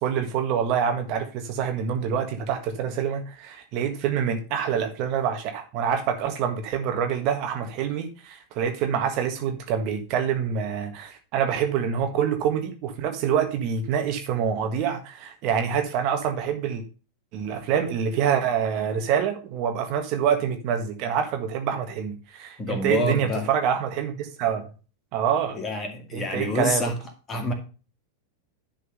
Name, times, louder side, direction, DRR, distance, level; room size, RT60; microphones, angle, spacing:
voice 1, 0.0-16.8 17.3-24.7 25.1-25.6 26.1-26.9, right 8 dB, 40° right, 1.5 m, -26 dB
voice 2, 22.6-23.5 25.5-27.0 27.3-27.5, left 1 dB, 20° left, 2.3 m, -27 dB
11.0 x 4.3 x 5.4 m
figure-of-eight pair, 90°, 0 cm